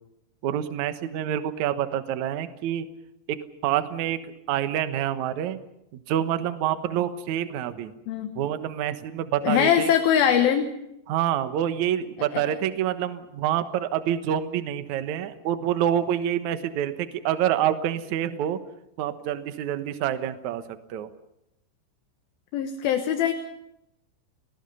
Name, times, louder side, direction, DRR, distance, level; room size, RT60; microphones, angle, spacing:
voice 1, 0.4-2.9 3.3-3.4 3.6-4.2 4.5-5.6 6.1-7.9 8.4-9.9 11.1-18.6 19.0-20.6 20.9-21.1, right 10 dB, 70° right, 10 dB, 1.9 m, -27 dB
voice 2, 9.4-10.7 12.3-12.4 22.5-23.3, left 9 dB, 65° left, 5 dB, 2.8 m, -22 dB
30.0 x 20.0 x 5.6 m, 0.82 s
omnidirectional pair, 5.1 m